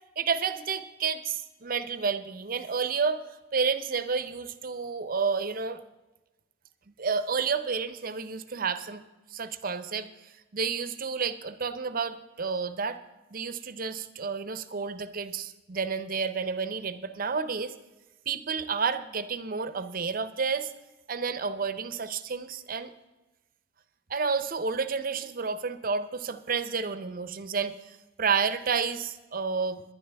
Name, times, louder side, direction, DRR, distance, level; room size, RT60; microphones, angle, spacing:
voice 1, 0.2-3.2 3.5-5.8 7.0-9.0 9.3-13.0 13.3-17.7 18.3-20.7 21.1-22.9 24.1-29.8, right 5 dB, 45° right, 12 dB, 0.7 m, -30 dB
19.5 x 11.0 x 3.4 m, 1.1 s
head